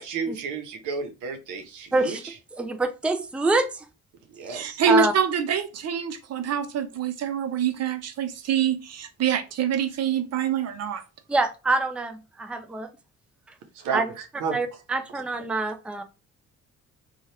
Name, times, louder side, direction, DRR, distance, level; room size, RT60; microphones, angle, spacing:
voice 1, 0.0-2.3 4.3-4.8 13.7-14.6, right 5 dB, 90° right, 0.8 m, -32 dB
voice 2, 2.6-3.8 4.9-5.1 11.3-12.9 13.9-14.1 14.5-16.0, right 2 dB, 5° right, 0.4 m, -25 dB
voice 3, 4.5-11.0, right 7 dB, 55° right, 0.6 m, -25 dB
2.8 x 2.3 x 3.2 m
cardioid pair, 90°, 30 cm